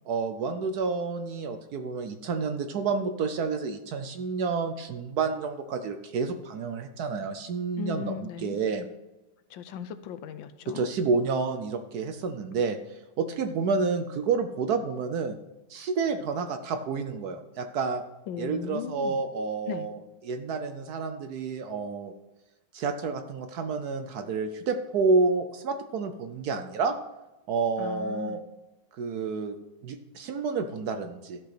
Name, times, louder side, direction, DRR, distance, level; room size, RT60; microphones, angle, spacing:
voice 1, 0.1-8.9 10.7-15.3 15.7-18.0 18.4-20.0 20.2-22.1 22.7-26.9 27.5-28.4 29.0-29.6 29.8-31.4, right 4 dB, 65° right, 8 dB, 1.0 m, -29 dB
voice 2, 7.8-8.6 9.5-10.9 18.3-19.2 19.7-19.9 27.8-28.4, left 8 dB, 80° left, 11 dB, 1.4 m, -37 dB
13.0 x 5.5 x 5.9 m, 1.0 s
omnidirectional pair, 2.1 m